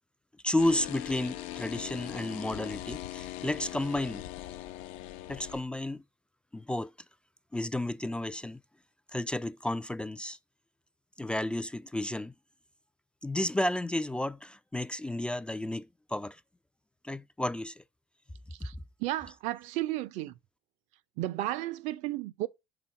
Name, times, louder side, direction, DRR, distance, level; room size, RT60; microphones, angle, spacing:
voice 1, 0.4-4.2 5.3-6.0 6.5-6.9 7.5-8.6 9.1-10.4 11.2-12.3 13.2-16.4 17.0-17.8, left 1 dB, 10° left, 0.3 m, -32 dB
sound 1, 0.6-5.6, left 13 dB, 70° left, 0.7 m, -40 dB
voice 2, 19.0-20.3 21.2-22.5, right 16 dB, 65° right, 0.6 m, -33 dB
6.0 x 3.6 x 5.2 m
hypercardioid pair, 75°, 13 cm